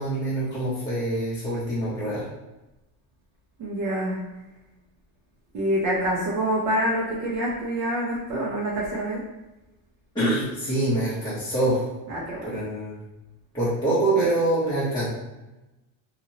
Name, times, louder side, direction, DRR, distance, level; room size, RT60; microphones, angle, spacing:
voice 1, 0.0-2.3 10.1-11.9 12.4-13.0 13.5-15.1, right 1 dB, 10° left, -13 dB, 0.6 m, -25 dB
voice 2, 3.6-4.2 5.5-9.2 12.1-12.5, right 1 dB, 40° right, -4 dB, 0.5 m, -26 dB
2.9 x 2.7 x 2.7 m, 1.0 s
cardioid pair, 160°, 46 cm